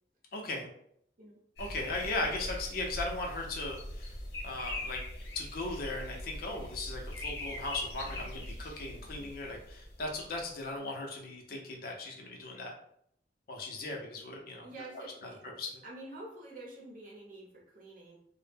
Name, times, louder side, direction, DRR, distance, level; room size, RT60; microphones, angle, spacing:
voice 1, 0.3-0.7 1.6-4.1 4.4-5.0 5.3-12.7 13.5-14.7 14.9-15.0 15.6-15.8, left 2 dB, 55° left, 1 dB, 0.5 m, -37 dB
sound 1, 1.6-10.4, left 1 dB, 75° left, 0.9 m, -42 dB
voice 2, 14.6-15.4 15.8-18.1, right 2 dB, 50° right, -3 dB, 0.8 m, -47 dB
2.0 x 2.0 x 3.3 m, 0.68 s
head